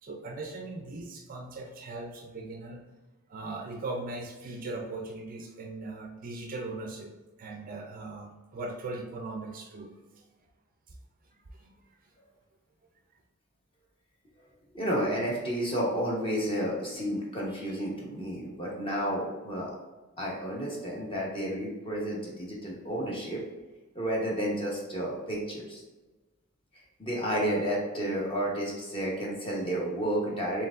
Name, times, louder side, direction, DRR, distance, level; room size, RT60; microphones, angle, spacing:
voice 1, 0.0-2.8 3.3-7.1 7.4-10.3 10.9-11.0 11.5-11.7, right 2 dB, 40° right, 2 dB, 0.4 m, -39 dB
voice 2, 14.7-19.8 20.2-23.4 23.9-25.8 27.0-30.7, equal, 25° left, -4 dB, 1.0 m, -31 dB
4.4 x 3.6 x 2.5 m, 1.2 s
head